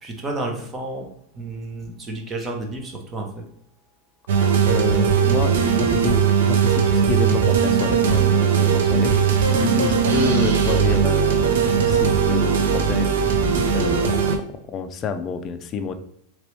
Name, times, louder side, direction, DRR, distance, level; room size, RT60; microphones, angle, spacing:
voice 1, 0.0-1.1 1.3-3.5, right 2 dB, 20° right, 2 dB, 0.8 m, -31 dB
sound 1, 4.3-14.4, right 7 dB, 90° right, 0.5 m, -19 dB
voice 2, 4.6-9.2 9.5-13.1 13.7-14.4 14.7-15.9, left 5 dB, 30° left, 7 dB, 0.4 m, -28 dB
3.0 x 2.9 x 3.1 m, 0.71 s
supercardioid pair, 140°, 0 cm